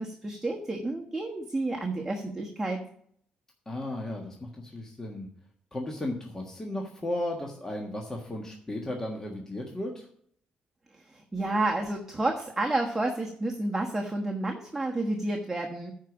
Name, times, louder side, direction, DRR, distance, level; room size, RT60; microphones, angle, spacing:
voice 1, 0.0-2.8 10.9-15.9, right 2 dB, 15° right, 0 dB, 1.2 m, -30 dB
voice 2, 3.7-5.3 5.7-10.0, left 1 dB, 20° left, 0 dB, 1.5 m, -35 dB
10.0 x 4.8 x 7.2 m, 0.63 s
cardioid pair, 105°, 3 cm